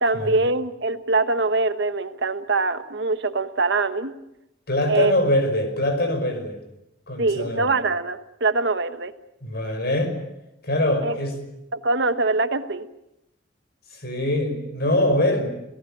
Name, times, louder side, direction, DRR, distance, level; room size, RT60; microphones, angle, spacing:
voice 1, 0.0-4.1 4.9-5.1 7.2-9.1 11.0-11.2 11.7-12.9, right 3 dB, 60° right, 10 dB, 1.3 m, -23 dB
voice 2, 4.7-6.6 7.1-7.7 9.4-10.2 10.6-11.4 13.9-15.5, left 1 dB, 55° left, 7 dB, 5.5 m, -23 dB
28.0 x 18.5 x 8.7 m, 0.86 s
head